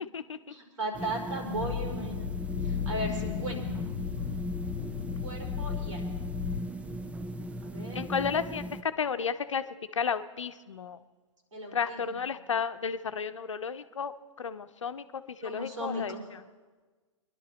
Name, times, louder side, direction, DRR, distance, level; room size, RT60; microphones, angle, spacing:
voice 1, 0.5-2.3 2.6-3.6 5.2-6.0 7.6-8.0 11.5-12.2 15.4-16.2, right 1 dB, 75° right, 0 dB, 4.8 m, -36 dB
sound 1, 0.9-8.8, right 1 dB, 10° right, 0.6 m, -38 dB
sound 2, 1.5-6.6, left 11 dB, 45° left, 0.5 m, -35 dB
voice 2, 7.9-9.6 9.9-11.0 11.7-14.1 14.4-16.1, left 6 dB, 70° left, 11 dB, 0.9 m, -32 dB
24.0 x 11.5 x 4.3 m, 1.3 s
figure-of-eight pair, 110°, 17 cm